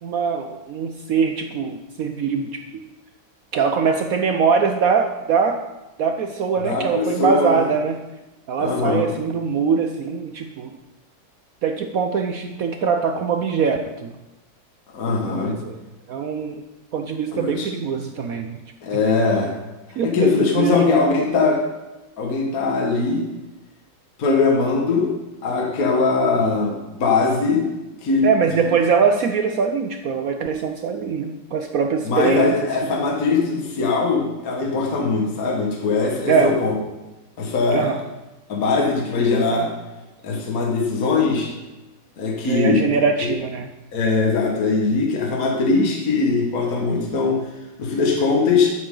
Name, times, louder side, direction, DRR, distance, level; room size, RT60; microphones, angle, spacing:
voice 1, 0.0-2.8 3.5-5.6 6.0-8.0 8.5-10.8 11.6-14.1 15.3-15.8 16.1-16.6 16.9-18.6 20.0-20.8 28.2-32.5 36.3-36.5 37.7-38.0 42.5-43.7, right 5 dB, 80° right, 5 dB, 0.7 m, -22 dB
voice 2, 6.6-7.7 8.6-9.1 14.9-15.6 17.3-17.7 18.8-19.6 20.0-21.6 22.2-23.2 24.2-25.1 25.4-27.7 28.0-28.3 32.1-36.8 37.4-37.9 38.5-39.7 40.2-41.5 42.2-42.8 43.2-43.3 43.9-47.4 47.8-48.7, left 4 dB, 45° left, -1 dB, 1.9 m, -21 dB
11.5 x 10.0 x 3.8 m, 1.0 s
omnidirectional pair, 2.3 m